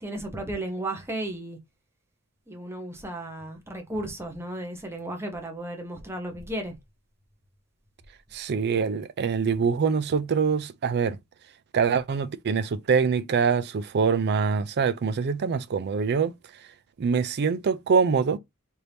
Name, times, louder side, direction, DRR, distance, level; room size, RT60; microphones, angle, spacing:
voice 1, 0.0-1.6 2.5-6.8, right 1 dB, 10° right, 0.9 m, -34 dB
voice 2, 8.3-11.2 11.7-16.3 17.0-18.4, right 5 dB, 50° right, 0.4 m, -24 dB
4.4 x 2.7 x 3.4 m
head